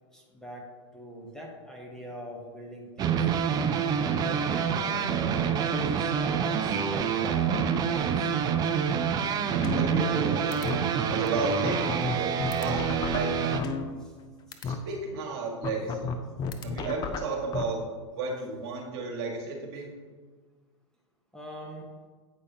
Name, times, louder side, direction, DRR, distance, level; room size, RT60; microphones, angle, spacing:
voice 1, 0.1-0.6 0.9-3.3 4.2-5.1 5.5-8.3 21.3-21.9, equal, 5° left, -2 dB, 0.9 m, -43 dB
sound 1, 3.0-13.6, right 7 dB, 25° right, 0.4 m, -27 dB
sound 2, 9.6-10.2 10.5-10.8 11.3-11.4 11.6-14.2 14.5-14.8 15.6-17.6, left 5 dB, 25° left, 0.5 m, -33 dB
voice 2, 9.8-10.6 11.1-12.3 12.6-13.6 14.6-16.1 16.6-17.8 18.1-19.9, right 3 dB, 55° right, 1 dB, 1.5 m, -33 dB
8.5 x 4.8 x 2.8 m, 1.5 s
hypercardioid pair, 105°, 16 cm